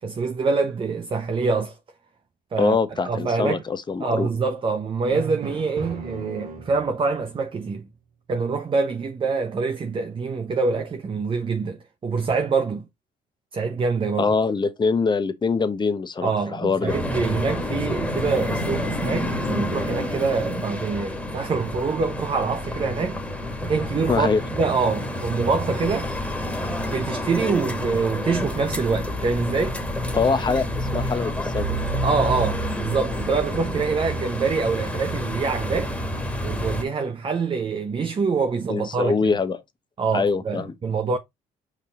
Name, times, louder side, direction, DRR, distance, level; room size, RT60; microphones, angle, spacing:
voice 1, 0.0-1.8 2.5-2.8 3.0-3.6 4.0-7.9 8.3-12.9 13.5-14.3 16.2-23.2 23.6-26.1 26.9-29.8 32.0-36.0 36.4-39.3 40.0-41.2, right 4 dB, 30° right, 0.9 m, -25 dB
voice 2, 2.6-4.3 14.2-17.0 24.1-24.4 30.1-31.7 38.7-39.6 40.1-40.7, left 4 dB, 25° left, 1.0 m, -23 dB
Drum, 5.1-7.1, right 5 dB, 55° right, 2.5 m, -35 dB
sound 1, 16.9-36.8, left 1 dB, 5° left, 1.9 m, -28 dB
5.3 x 5.0 x 3.7 m
cardioid pair, 110°, 17 cm